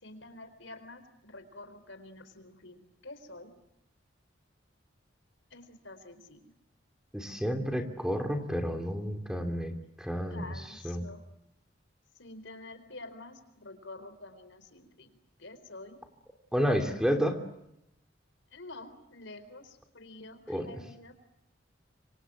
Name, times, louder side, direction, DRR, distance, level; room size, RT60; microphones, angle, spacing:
voice 1, 0.0-3.5 5.5-6.5 10.3-11.2 12.2-15.1 15.4-16.0 18.5-21.1, left 2 dB, 80° left, 10 dB, 4.3 m, -48 dB
voice 2, 7.1-10.5 10.8-11.1 16.5-17.4 20.5-20.7, equal, 5° right, 5 dB, 3.0 m, -30 dB
28.0 x 25.0 x 7.7 m, 0.83 s
head